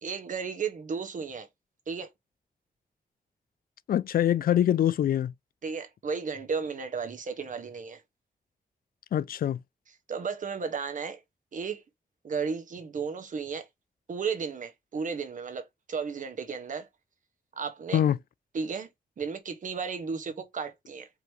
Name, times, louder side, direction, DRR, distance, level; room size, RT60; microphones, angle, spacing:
voice 1, 0.0-1.5 1.9-2.1 5.6-8.0 10.1-11.2 11.5-11.8 12.2-13.7 14.1-16.9 17.6-18.0 18.5-18.9 19.2-21.1, right 5 dB, 55° right, 1.1 m, -34 dB
voice 2, 3.9-5.3 9.1-9.6 17.9-18.2, left 11 dB, 70° left, 0.4 m, -24 dB
4.8 x 2.9 x 3.1 m
wide cardioid pair, 155°, 16 cm